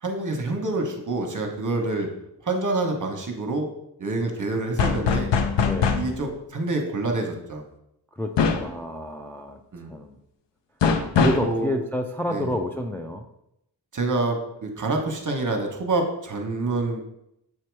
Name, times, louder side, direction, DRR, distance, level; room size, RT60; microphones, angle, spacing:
voice 1, 0.0-2.1 2.4-3.7 4.0-5.3 5.9-7.6 9.7-9.9 11.2-11.7 12.3-12.5 13.9-17.0, right 2 dB, 45° right, 2 dB, 1.2 m, -27 dB
sound 1, 4.8-6.1 8.4-8.7 10.8-11.5, left 6 dB, 85° left, 0.7 m, -22 dB
voice 2, 5.6-6.0 8.1-9.6 9.9-10.2 11.2-13.2, left 1 dB, 5° left, 4 dB, 0.4 m, -29 dB
7.6 x 2.9 x 4.6 m, 0.79 s
wide cardioid pair, 100°, 42 cm